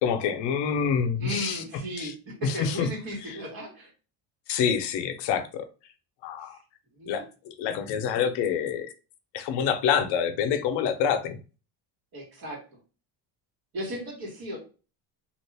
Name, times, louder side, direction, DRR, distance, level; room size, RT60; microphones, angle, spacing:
voice 1, 0.0-1.6 2.0-2.1 2.6-2.9 4.5-5.6 6.2-6.6 7.1-8.9 9.3-11.4, left 7 dB, 75° left, 0.7 m, -27 dB
voice 2, 1.2-3.9 6.5-6.6 6.9-7.2 12.1-12.6 13.7-14.6, equal, 55° right, 1.8 m, -36 dB
2.9 x 2.5 x 3.3 m
cardioid pair, 145°, 42 cm